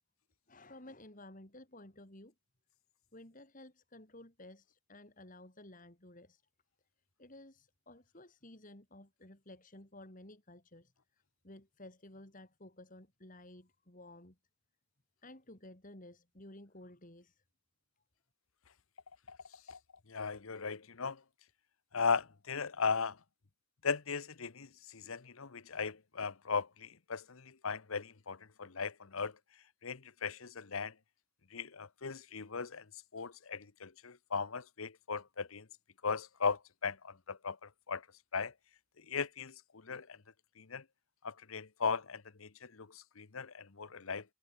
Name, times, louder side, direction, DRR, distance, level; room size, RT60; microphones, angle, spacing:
voice 1, 0.5-2.3 3.1-6.4 7.2-14.4 15.2-17.4, left 1 dB, 40° left, 3.5 m, -54 dB
voice 2, 20.1-21.2 21.9-23.2 23.8-29.3 29.8-30.9 31.5-32.8 33.1-35.6 36.0-38.0 38.3-38.5 39.1-39.5 39.8-40.2 40.6-40.8 41.2-44.2, left 5 dB, 75° left, 1.0 m, -37 dB
head